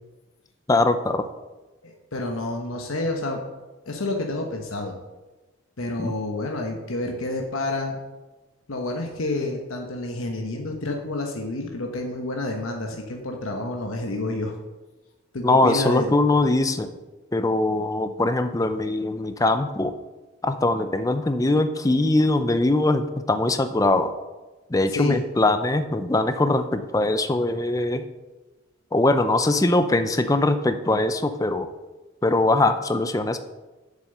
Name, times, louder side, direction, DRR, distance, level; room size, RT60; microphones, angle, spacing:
voice 1, 0.7-1.3 6.0-6.1 15.4-16.9 17.3-20.0 20.4-24.1 24.7-28.1 28.9-31.7 32.2-33.4, left 2 dB, 15° left, 9 dB, 0.5 m, -22 dB
voice 2, 1.8-3.4 3.8-5.0 5.8-8.0 8.7-14.5 15.3-16.4 24.9-25.2, left 2 dB, 85° left, 2 dB, 1.1 m, -29 dB
7.5 x 7.3 x 6.6 m, 1.2 s
head